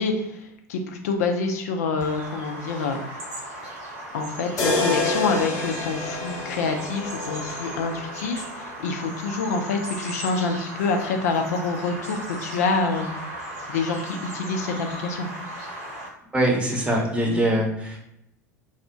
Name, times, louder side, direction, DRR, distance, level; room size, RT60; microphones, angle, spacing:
voice 1, 0.0-3.0 4.1-13.1 13.7-15.3 17.3-17.4, left 4 dB, 65° left, 4 dB, 0.3 m, -27 dB
Bird vocalization bird call bird song, 2.0-16.1, right 1 dB, 55° right, 0.9 m, -37 dB
sound 1, 4.6-8.6, left 2 dB, 35° left, 0.7 m, -28 dB
voice 2, 16.3-18.0, right 1 dB, 10° right, -1 dB, 0.8 m, -23 dB
2.7 x 2.1 x 2.5 m, 0.84 s
figure-of-eight pair, 75°, 9 cm